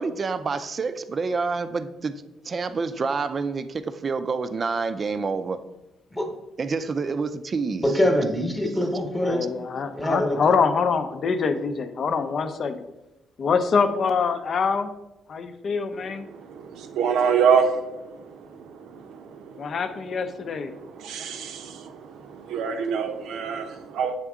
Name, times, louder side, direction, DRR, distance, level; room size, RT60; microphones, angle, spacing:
voice 1, 0.0-5.6 6.6-7.8, right 4 dB, 40° right, 11 dB, 0.4 m, -28 dB
voice 2, 7.8-9.5 9.9-10.4, equal, 10° left, 4 dB, 1.1 m, -24 dB
voice 3, 9.2-12.8 13.4-14.9 15.3-16.2 19.6-20.7, left 5 dB, 55° left, 9 dB, 0.5 m, -24 dB
voice 4, 15.9-19.8 20.6-24.2, right 6 dB, 85° right, 6 dB, 0.7 m, -27 dB
7.8 x 3.6 x 3.6 m, 0.98 s
cardioid pair, 90°, 0 cm